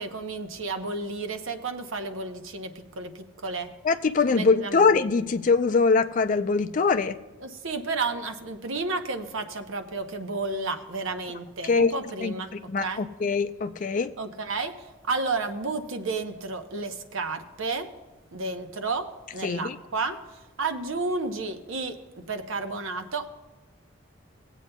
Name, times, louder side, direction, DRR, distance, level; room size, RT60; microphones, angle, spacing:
voice 1, 0.0-3.7 4.3-4.8 7.4-12.5 12.8-13.0 14.2-17.9 18.3-20.2 20.6-22.0 22.3-23.3, right 3 dB, 80° right, 7 dB, 0.8 m, -32 dB
voice 2, 3.8-7.2 11.6-11.9 12.2-14.1 19.4-19.8, left 4 dB, 40° left, 9 dB, 0.4 m, -23 dB
19.5 x 8.2 x 2.2 m, 1.1 s
head